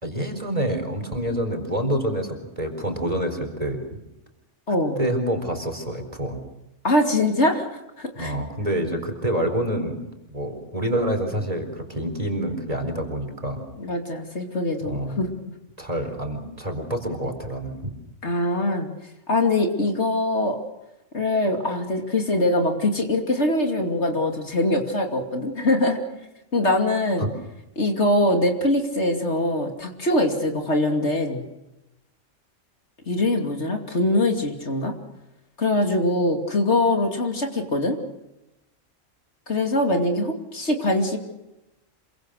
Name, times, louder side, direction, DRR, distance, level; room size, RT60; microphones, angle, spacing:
voice 1, 0.0-4.0 5.0-6.4 8.1-10.0 10.3-13.6 14.8-15.2 15.8-17.9 27.2-27.3, right 1 dB, 30° right, 4 dB, 4.6 m, -27 dB
voice 2, 4.7-5.0 6.8-7.6 8.0-8.3 13.8-15.3 18.2-18.9 19.3-20.6 21.1-26.0 26.5-27.2 27.8-31.4 33.1-34.9 35.6-38.0 39.5-41.2, left 1 dB, 60° left, 3 dB, 3.0 m, -23 dB
27.5 x 24.0 x 6.5 m, 0.95 s
omnidirectional pair, 1.3 m